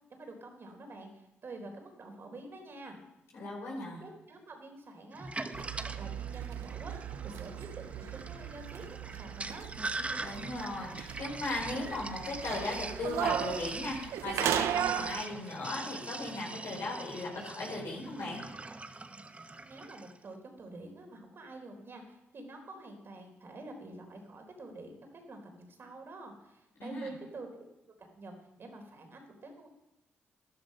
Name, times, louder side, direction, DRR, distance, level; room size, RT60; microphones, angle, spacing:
voice 1, 0.1-3.0 4.0-9.7 19.6-27.7 28.0-29.7, right 2 dB, 55° right, 4 dB, 3.9 m, -48 dB
voice 2, 3.3-4.0 10.1-18.4 26.8-27.1, left 2 dB, 70° left, -3 dB, 4.9 m, -37 dB
Sink (filling or washing), 5.1-20.2, right 2 dB, 25° right, 1.0 m, -43 dB
sound 1, 5.5-15.2, right 11 dB, 80° right, 0.4 m, -37 dB
13.0 x 12.0 x 5.6 m, 0.92 s
supercardioid pair, 55°, 5 cm